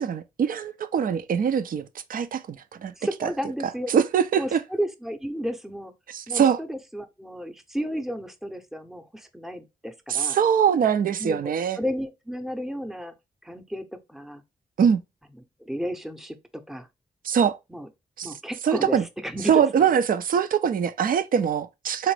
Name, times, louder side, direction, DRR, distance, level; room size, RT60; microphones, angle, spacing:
voice 1, 0.0-2.9 3.2-3.3 3.9-4.6 6.1-6.6 10.1-11.8 14.8-15.0 17.2-17.6 18.2-18.3 18.6-19.0 19.5-22.1, right 8 dB, 65° right, 0.5 m, -23 dB
voice 2, 3.0-3.9 4.4-5.9 6.3-10.4 11.2-13.1 13.4-14.4 15.6-16.9 17.7-17.9 18.2-19.9, equal, ahead, 0.7 m, -33 dB
3.9 x 2.5 x 3.2 m
supercardioid pair, 45°, 16 cm